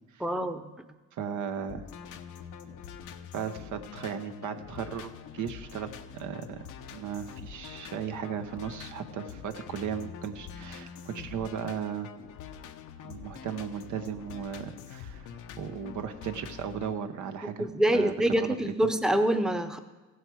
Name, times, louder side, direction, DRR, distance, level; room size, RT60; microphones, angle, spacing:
voice 1, 0.2-0.6 17.6-19.8, right 1 dB, ahead, 7 dB, 0.7 m, -26 dB
voice 2, 1.1-1.8 3.3-6.6 6.9-12.1 13.0-15.3 15.6-17.7 17.9-18.9, right 7 dB, 75° right, 8 dB, 0.9 m, -36 dB
sound 1, 1.7-16.9, left 8 dB, 85° left, 0.8 m, -45 dB
15.5 x 8.0 x 4.7 m, 1.2 s
cardioid pair, 90°, 30 cm